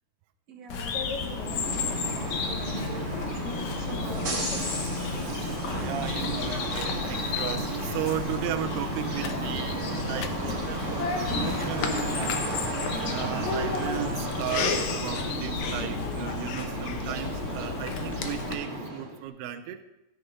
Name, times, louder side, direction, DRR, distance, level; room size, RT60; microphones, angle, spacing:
voice 1, 0.5-1.4 1.8-4.8, right 3 dB, 60° right, 1.8 m, -44 dB
Bird vocalization bird call bird song, 0.7-18.5, left 5 dB, 75° left, 1.7 m, -33 dB
sound 1, 1.1-19.2, right 2 dB, 35° right, 1.1 m, -33 dB
voice 2, 5.1-12.5 13.1-19.8, right 12 dB, 85° right, 2.7 m, -36 dB
sound 2, 8.0-13.1, left 9 dB, 90° left, 2.8 m, -46 dB
13.5 x 9.4 x 3.9 m
omnidirectional pair, 4.6 m